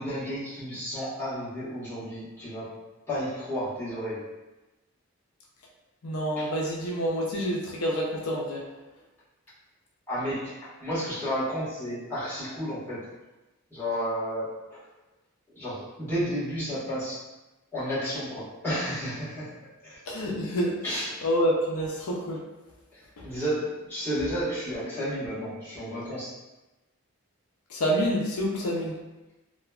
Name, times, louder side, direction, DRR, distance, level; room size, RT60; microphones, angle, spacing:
voice 1, 0.0-2.8 3.1-4.3 6.3-6.5 10.1-13.1 13.7-14.6 15.5-17.2 17.7-20.0 20.8-21.3 22.9-26.4, equal, 10° left, -14 dB, 1.4 m, -32 dB
voice 2, 6.0-8.6 20.1-20.8 21.2-22.4 23.2-23.3 27.7-29.0, equal, 85° left, -3 dB, 0.5 m, -27 dB
3.1 x 2.1 x 2.3 m, 1.1 s
head